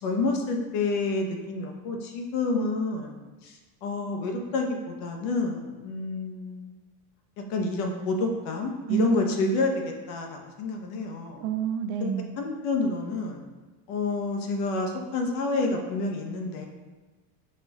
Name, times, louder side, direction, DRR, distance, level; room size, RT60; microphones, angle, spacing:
voice 1, 0.0-6.7 7.5-11.4 12.0-12.1 12.4-13.4 13.9-16.7, left 3 dB, 80° left, 2 dB, 0.9 m, -29 dB
voice 2, 8.9-9.5 11.4-12.4, right 10 dB, 70° right, 6 dB, 0.5 m, -29 dB
5.3 x 2.4 x 4.1 m, 1.3 s
cardioid pair, 130°, 45 cm